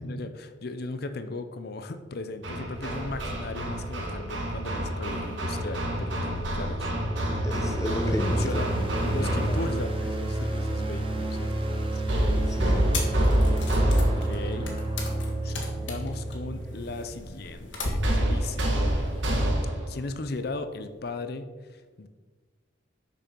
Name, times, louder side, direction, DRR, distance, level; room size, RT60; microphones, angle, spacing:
voice 1, 0.0-6.9 8.0-11.5 11.9-12.0 13.0-14.8 15.4-18.8 19.9-22.1, left 3 dB, 55° left, 9 dB, 0.6 m, -37 dB
Hammer, 2.4-9.9 12.1-14.5 18.0-20.0, right 1 dB, 80° right, 1.7 m, -27 dB
sound 1, 6.5-17.5, right 1 dB, 30° right, 1.1 m, -31 dB
voice 2, 7.4-9.6 12.5-12.9, left 1 dB, 15° left, 6 dB, 0.8 m, -33 dB
sound 2, 12.9-19.6, left 2 dB, 80° left, 1.8 m, -36 dB
6.7 x 6.1 x 6.0 m, 1.4 s
head